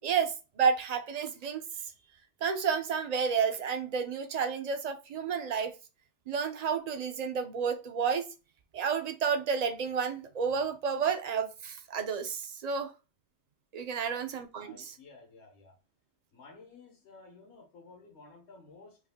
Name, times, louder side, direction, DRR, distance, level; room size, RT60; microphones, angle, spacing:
voice 1, 0.0-1.6 2.4-5.7 6.3-8.3 8.7-12.9 13.7-15.0, right 6 dB, 50° right, 0.5 m, -31 dB
voice 2, 14.6-15.7 16.3-19.0, left 3 dB, 70° left, 1.3 m, -54 dB
3.4 x 2.5 x 3.5 m
omnidirectional pair, 1.2 m